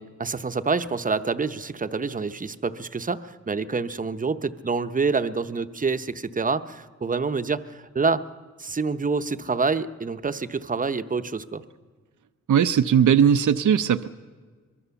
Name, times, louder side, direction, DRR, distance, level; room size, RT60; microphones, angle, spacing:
voice 1, 0.0-8.3 8.6-11.6, right 4 dB, 25° right, 11 dB, 0.7 m, -27 dB
voice 2, 12.5-14.1, right 8 dB, 80° right, 11 dB, 0.6 m, -19 dB
24.0 x 22.5 x 7.0 m, 1.5 s
wide cardioid pair, 140°, 30 cm